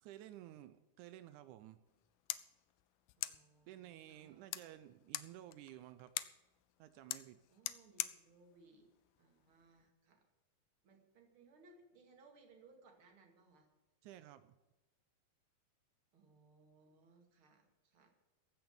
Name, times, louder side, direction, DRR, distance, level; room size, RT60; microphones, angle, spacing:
voice 1, 0.0-1.8 3.7-6.1 6.8-7.4 14.0-14.6, right 13 dB, 85° right, 12 dB, 1.7 m, -54 dB
sound 1, 1.9-9.9, left 16 dB, 80° left, 2.0 m, -47 dB
voice 2, 3.2-4.8 7.5-8.9 9.2-10.2 10.8-13.7 16.1-18.1, right 3 dB, 40° right, 3 dB, 2.6 m, -65 dB
15.5 x 5.9 x 9.1 m, 1.1 s
omnidirectional pair, 4.2 m